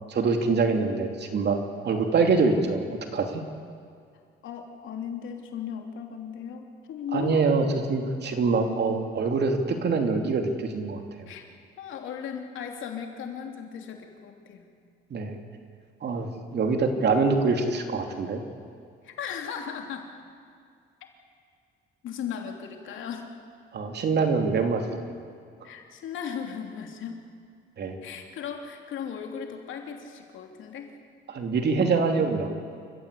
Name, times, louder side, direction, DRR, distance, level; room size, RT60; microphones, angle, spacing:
voice 1, 0.0-1.6 1.8-2.8 3.1-3.4 7.1-11.0 15.1-15.4 16.0-18.4 23.7-24.8 27.8-28.0 31.3-32.5, right 4 dB, 60° right, 4 dB, 3.0 m, -24 dB
voice 2, 4.4-7.4 11.3-11.5 11.8-14.7 19.0-20.1 22.0-23.3 25.6-27.2 28.0-30.9, left 7 dB, 80° left, 3 dB, 3.1 m, -36 dB
28.0 x 15.0 x 8.4 m, 2.3 s
cardioid pair, 90°, 20 cm